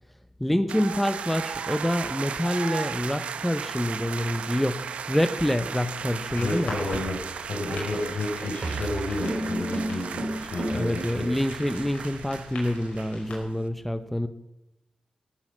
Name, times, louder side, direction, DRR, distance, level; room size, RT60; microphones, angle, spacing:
voice 1, 0.4-6.7 8.4-8.5 10.7-14.3, left 1 dB, 5° left, 0.7 m, -27 dB
sound 1, 0.7-13.4, right 7 dB, 85° right, 0.9 m, -36 dB
sound 2, 6.3-13.4, left 3 dB, 85° left, 5.1 m, -42 dB
voice 2, 6.3-7.2 7.5-11.3, left 2 dB, 70° left, 5.9 m, -31 dB
sound 3, 8.6-11.0, right 1 dB, 55° right, 2.6 m, -31 dB
17.5 x 9.5 x 7.4 m
cardioid pair, 85°, 2 cm